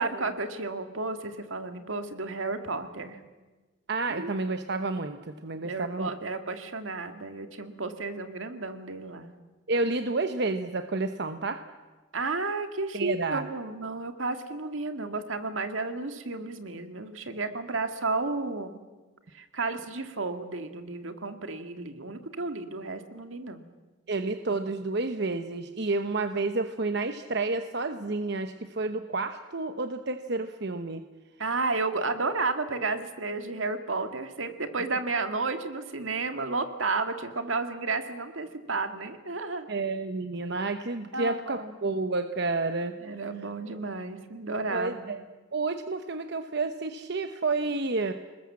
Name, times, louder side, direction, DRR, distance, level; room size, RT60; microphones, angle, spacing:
voice 1, 0.0-3.2 4.1-4.3 5.6-9.3 12.1-18.8 19.3-23.6 31.4-39.7 41.1-41.7 43.0-45.1, right 3 dB, 80° right, 7 dB, 2.1 m, -32 dB
voice 2, 3.9-6.1 9.7-11.6 12.9-13.5 24.1-31.0 39.7-43.0 44.7-45.2 45.5-48.1, right 3 dB, 60° right, 8 dB, 1.0 m, -30 dB
28.5 x 20.0 x 7.5 m, 1.3 s
head